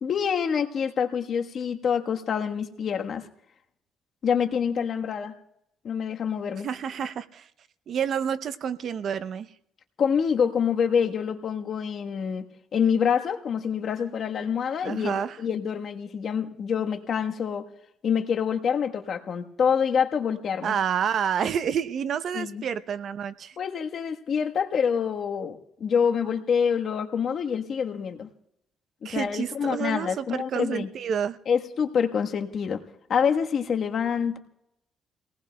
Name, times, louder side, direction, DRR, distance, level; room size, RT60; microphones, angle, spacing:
voice 1, 0.0-3.2 4.2-5.3 5.8-6.7 10.0-12.5 12.7-17.6 18.0-20.7 22.3-22.6 23.6-28.3 29.0-30.9 31.5-32.8 33.1-34.4, left 7 dB, 60° left, 4 dB, 1.3 m, -26 dB
voice 2, 6.6-7.5 7.9-9.5 14.8-15.4 20.6-23.6 29.0-31.4, right 8 dB, 65° right, 13 dB, 0.7 m, -29 dB
30.0 x 18.5 x 2.3 m, 0.80 s
cardioid pair, 90°, 0 cm